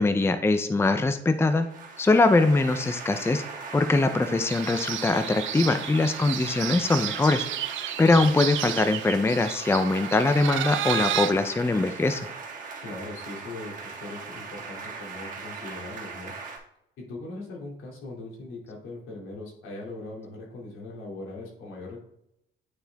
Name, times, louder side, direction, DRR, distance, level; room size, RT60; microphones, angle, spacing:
voice 1, 0.0-1.7 2.0-3.4 3.7-7.5 8.0-12.3, left 3 dB, 10° left, 9 dB, 0.5 m, -22 dB
sound 1, 1.4-16.6, right 4 dB, 40° right, 1.9 m, -40 dB
sound 2, 4.5-11.3, right 11 dB, 75° right, 0.6 m, -32 dB
voice 2, 12.8-16.3 17.0-22.0, left 2 dB, 85° left, -3 dB, 2.6 m, -40 dB
9.2 x 4.3 x 3.4 m, 0.80 s
cardioid pair, 90°, 20 cm